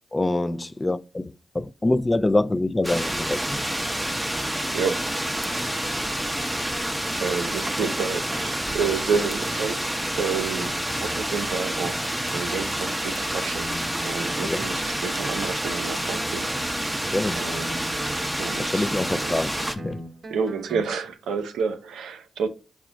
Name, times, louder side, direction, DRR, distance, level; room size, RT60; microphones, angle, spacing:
voice 1, 0.1-3.6 14.4-14.7 17.1-17.4 18.6-20.0, left 2 dB, 25° left, 0.3 m, -25 dB
sound 1, 2.8-19.8, right 1 dB, 10° right, 0.7 m, -28 dB
voice 2, 4.7-5.1 5.4-5.8 7.2-9.9 10.2-13.7 14.0-16.5 17.4-17.8 18.4-19.4 20.3-22.5, right 6 dB, 85° right, 0.5 m, -30 dB
Guitar, 13.5-20.9, right 1 dB, 55° right, 0.8 m, -39 dB
4.8 x 2.1 x 3.7 m
supercardioid pair, 40°, 0 cm